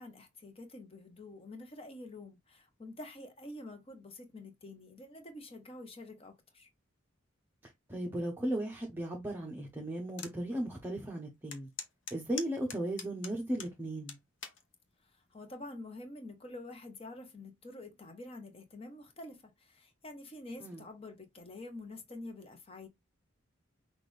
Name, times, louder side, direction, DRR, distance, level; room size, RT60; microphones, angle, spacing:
voice 1, 0.0-6.7 15.0-22.9, left 2 dB, 30° left, 1.0 m, -47 dB
voice 2, 7.6-11.7 12.1-14.1 20.6-20.8, right 1 dB, 10° right, 0.8 m, -36 dB
sound 1, 10.2-10.4 10.8-10.9 11.5-13.7 14.1-14.6 15.3-15.6, left 6 dB, 65° left, 0.9 m, -43 dB
5.9 x 2.5 x 3.4 m
head